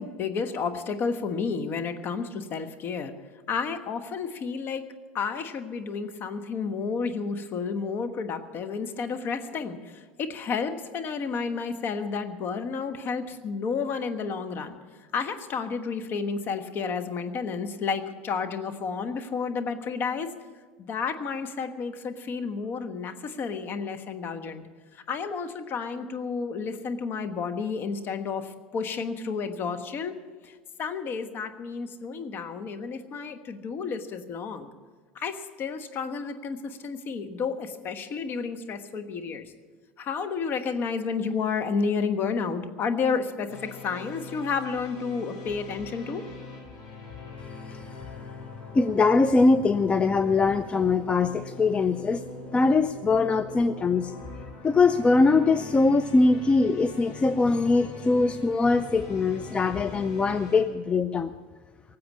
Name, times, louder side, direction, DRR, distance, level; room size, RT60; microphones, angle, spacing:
voice 1, 0.0-3.1 3.5-4.8 5.1-14.8 15.1-20.3 20.8-24.6 24.9-30.1 30.4-30.5 30.8-34.7 35.1-39.4 40.0-46.2, left 5 dB, 45° left, 7 dB, 1.3 m, -31 dB
sound 1, 43.5-60.6, left 3 dB, 65° left, 5.7 m, -42 dB
voice 2, 48.7-52.2 52.5-54.1 54.6-61.3, left 3 dB, 20° left, 11 dB, 0.5 m, -22 dB
18.0 x 7.7 x 8.4 m, 1.5 s
hypercardioid pair, 90°, 5 cm